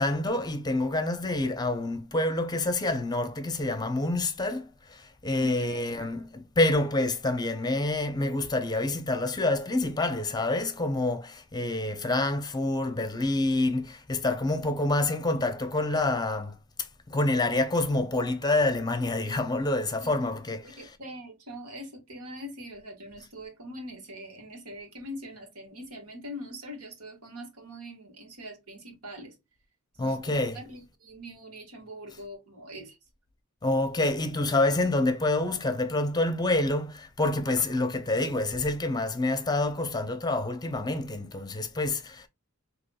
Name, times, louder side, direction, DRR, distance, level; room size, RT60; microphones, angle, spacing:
voice 1, 0.0-20.9 30.0-30.6 33.6-42.3, left 2 dB, 20° left, 0.7 m, -27 dB
voice 2, 5.4-5.8 20.0-20.3 20.6-29.4 30.0-33.0, equal, 85° right, 1.8 m, -43 dB
5.8 x 2.9 x 2.3 m
head